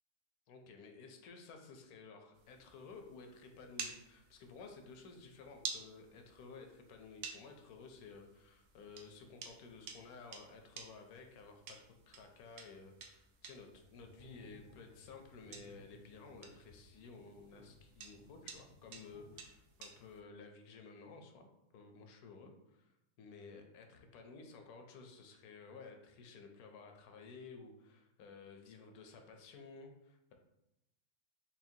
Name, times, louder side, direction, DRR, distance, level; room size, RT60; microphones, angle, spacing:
voice 1, 0.5-30.3, left 4 dB, 75° left, 4 dB, 1.1 m, -54 dB
sound 1, 2.3-20.2, right 6 dB, 85° right, 1.1 m, -52 dB
sound 2, 13.7-19.8, equal, 60° right, 1.5 m, -61 dB
5.7 x 2.2 x 2.7 m, 0.89 s
omnidirectional pair, 1.6 m